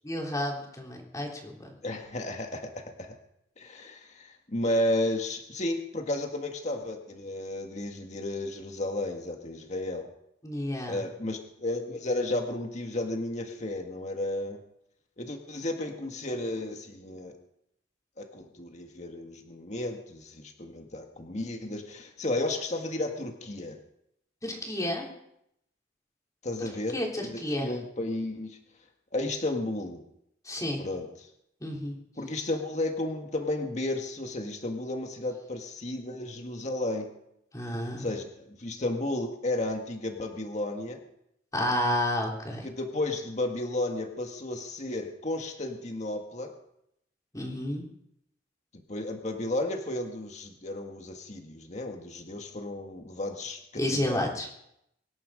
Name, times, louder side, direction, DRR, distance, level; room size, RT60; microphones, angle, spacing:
voice 1, 0.0-1.7 10.4-11.0 24.4-25.1 26.6-27.7 30.5-30.8 31.6-32.0 37.5-38.1 41.5-42.7 47.3-47.9 53.8-54.5, left 1 dB, 20° left, 0 dB, 3.6 m, -31 dB
voice 2, 1.8-2.7 3.0-3.1 3.6-10.1 10.9-14.6 15.2-17.4 18.2-23.8 26.4-28.6 29.1-30.0 30.8-31.1 32.2-37.1 38.0-41.0 42.6-46.5 48.9-54.2, left 1 dB, 40° left, 3 dB, 1.8 m, -33 dB
24.5 x 11.0 x 5.1 m, 0.77 s
head